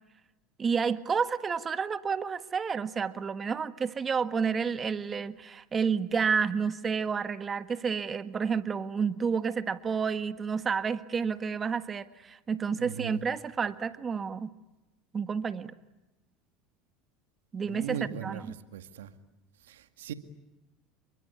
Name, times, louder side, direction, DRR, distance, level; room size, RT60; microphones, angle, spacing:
voice 1, 0.6-14.5 15.1-15.7 17.5-18.6, right 6 dB, 30° right, 12 dB, 1.6 m, -30 dB
voice 2, 12.8-13.2 17.6-18.4 18.7-19.1 19.7-20.1, right 8 dB, 90° right, 9 dB, 2.1 m, -38 dB
28.5 x 23.5 x 8.5 m, 1.0 s
supercardioid pair, 100°, 0 cm